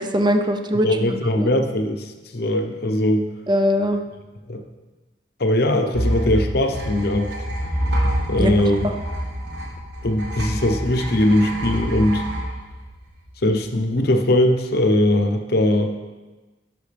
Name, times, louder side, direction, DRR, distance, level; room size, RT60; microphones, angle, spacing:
voice 1, 0.0-1.5 3.5-4.0 8.4-8.9, equal, 25° right, 6 dB, 0.5 m, -22 dB
voice 2, 0.8-3.3 4.5-4.6 5.4-7.3 8.3-8.9 10.0-12.2 13.4-15.9, left 1 dB, 60° left, 5 dB, 0.8 m, -20 dB
sound 1, 5.9-13.5, equal, 80° right, 1.4 m, -27 dB
12.0 x 6.2 x 3.4 m, 1.2 s
head